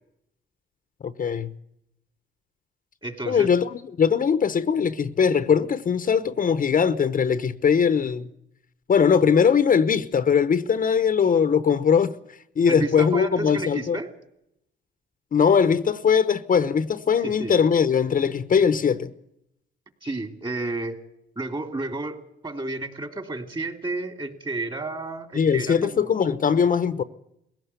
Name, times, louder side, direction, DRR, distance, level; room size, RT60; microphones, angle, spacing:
voice 1, 1.0-1.5 3.3-8.3 8.9-12.2 12.6-14.0 15.3-19.1 25.3-27.0, left 6 dB, 45° left, 1.0 m, -21 dB
voice 2, 3.0-3.5 12.7-14.1 17.2-17.5 20.0-21.0 21.4-22.2 22.4-26.1, right 2 dB, 25° right, 2.7 m, -31 dB
21.0 x 17.0 x 8.3 m
cardioid pair, 90°, 20 cm